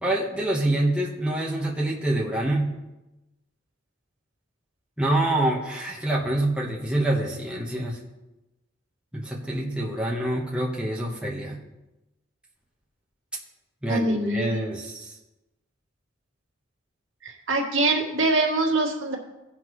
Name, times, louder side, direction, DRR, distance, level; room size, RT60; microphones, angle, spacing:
voice 1, 0.0-2.7 5.0-8.0 9.1-11.6 13.8-15.1, right 1 dB, 5° right, -3 dB, 1.1 m, -26 dB
voice 2, 13.9-14.6 17.2-19.2, right 2 dB, 70° right, -1 dB, 1.9 m, -24 dB
17.0 x 5.7 x 3.1 m, 1.0 s
head